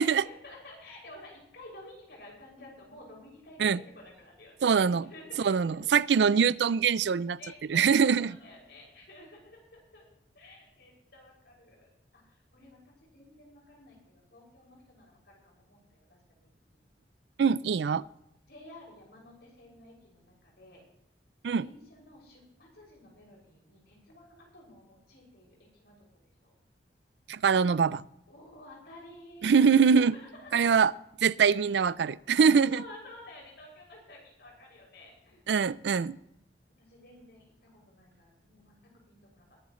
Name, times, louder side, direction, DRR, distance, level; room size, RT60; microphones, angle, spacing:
voice 1, 0.0-4.7 5.0-5.9 7.4-10.1 10.3-11.9 12.1-16.8 18.5-20.8 21.5-26.0 26.4-26.5 28.3-30.7 32.3-35.5 36.8-38.7 39.1-39.5, left 1 dB, 65° left, 6.3 m, -52 dB
voice 2, 4.6-5.1 5.4-7.4 7.7-8.3 17.4-18.0 21.4-21.7 27.3-28.0 29.4-30.1 30.5-30.9 31.2-32.8 35.5-36.2, right 6 dB, 70° right, 0.4 m, -23 dB
21.5 x 11.5 x 3.1 m
head